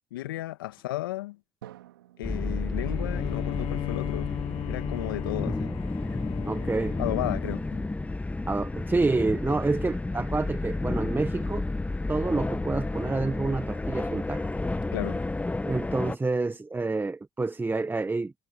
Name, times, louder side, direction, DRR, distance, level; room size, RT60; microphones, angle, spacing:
voice 1, 0.1-1.4 2.2-4.3 4.6-5.7 7.0-7.8 9.5-9.6 14.9-15.2, left 16 dB, 85° left, 2.1 m, -34 dB
Drum, 1.6-5.3, right 13 dB, 85° right, 3.4 m, -53 dB
sound 1, 2.2-16.2, left 2 dB, 10° left, 0.9 m, -31 dB
Bowed string instrument, 2.7-8.2, left 14 dB, 60° left, 0.6 m, -37 dB
voice 2, 6.5-7.0 8.5-11.7 12.1-14.4 15.6-18.3, right 3 dB, 20° right, 1.3 m, -28 dB
hypercardioid pair, 60°, 11 cm